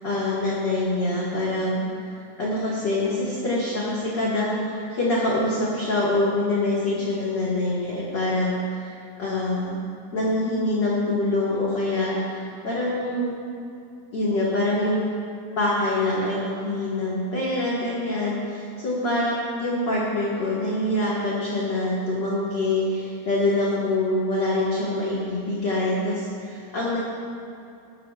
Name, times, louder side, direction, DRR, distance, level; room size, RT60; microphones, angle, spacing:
voice 1, 0.0-9.8 10.1-13.4 14.1-15.0 15.6-27.0, left 2 dB, 40° left, -7 dB, 1.8 m, -25 dB
20.5 x 13.5 x 2.5 m, 2.6 s
omnidirectional pair, 4.4 m